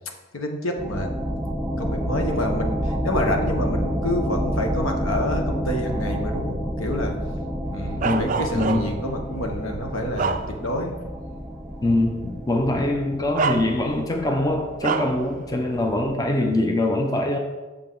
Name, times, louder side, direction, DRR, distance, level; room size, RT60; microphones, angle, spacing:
voice 1, 0.3-1.1 1.8-7.1 7.7-10.9, left 1 dB, 75° left, 3 dB, 1.2 m, -28 dB
sound 1, 0.8-16.1, equal, 5° right, 1.4 m, -29 dB
voice 2, 8.0-8.9 11.8-17.4, left 1 dB, 15° left, 3 dB, 0.6 m, -23 dB
Bark, 8.0-9.1 9.7-10.9 11.4-11.5 12.6-12.8 13.3-14.1 14.8-15.2, right 4 dB, 40° right, 0.3 m, -27 dB
7.9 x 6.8 x 3.9 m, 1.2 s
head